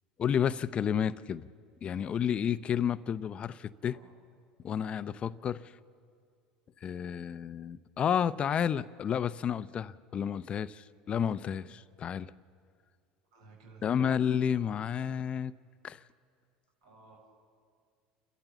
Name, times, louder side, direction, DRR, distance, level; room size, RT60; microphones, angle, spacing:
voice 1, 0.2-1.5 1.8-4.0 4.6-5.8 6.8-12.3 13.8-15.5 15.8-16.0, left 8 dB, 40° left, 16 dB, 0.6 m, -31 dB
voice 2, 13.3-14.1 16.8-17.4, right 3 dB, 85° right, 1 dB, 6.8 m, -55 dB
29.5 x 13.5 x 7.1 m, 2.3 s
hypercardioid pair, 90°, 3 cm